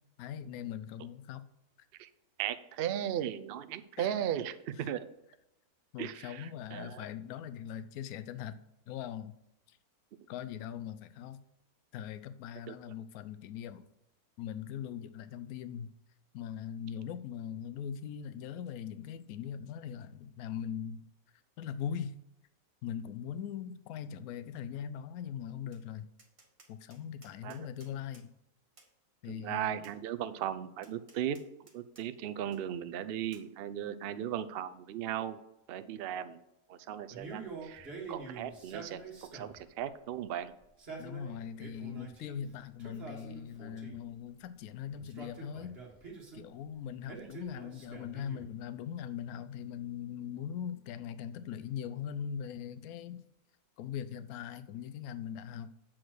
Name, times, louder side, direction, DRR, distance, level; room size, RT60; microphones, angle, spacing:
voice 1, 0.2-1.4 4.0-4.1 4.8-4.9 5.9-8.6 8.9-9.3 9.7-9.8 10.3-11.4 11.9-13.9 14.4-15.9 16.3-21.0 21.6-22.1 22.8-26.1 26.7-28.3 29.2-29.8 41.0-45.8 46.3-53.2 53.8-55.7, left 8 dB, 75° left, 11 dB, 1.0 m, -41 dB
voice 2, 2.4-5.0 6.0-7.1 12.7-12.8 27.4-27.7 29.3-35.4 35.7-36.4 36.7-40.5 47.2-47.3, right 10 dB, 85° right, 12 dB, 0.5 m, -37 dB
Tap, 25.7-25.8 26.2-28.3 28.8-28.9 29.8-30.0 30.8-32.1 32.5-32.6 33.3-33.5, right 3 dB, 25° right, 1.0 m, -60 dB
Male speech man speaking, 37.1-39.7 40.6-42.4 42.8-44.1 44.9-46.5 47.1-48.6, right 4 dB, 40° right, 1.7 m, -46 dB
7.6 x 4.4 x 6.2 m, 0.86 s
omnidirectional pair, 1.6 m